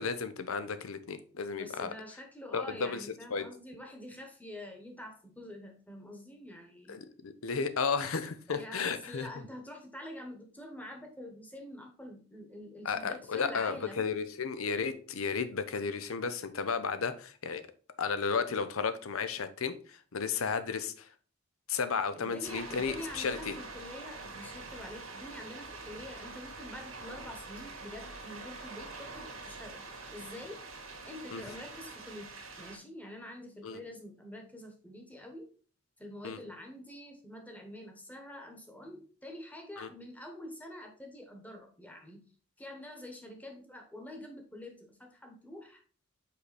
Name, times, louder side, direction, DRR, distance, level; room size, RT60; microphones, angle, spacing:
voice 1, 0.0-1.9 2.5-3.5 6.9-9.4 12.8-17.6 18.0-21.1 21.7-23.6 31.3-31.4 33.6-33.8 36.2-36.4 39.8-39.9, left 5 dB, 85° left, 11 dB, 0.7 m, -33 dB
voice 2, 1.6-7.0 8.5-14.1 22.1-29.8 30.1-30.6 31.0-35.5 36.0-42.2 42.6-45.8, left 1 dB, 5° left, 3 dB, 1.1 m, -46 dB
sound 1, 22.4-32.8, right 3 dB, 90° right, 1.7 m, -45 dB
5.5 x 4.8 x 4.1 m, 0.40 s
head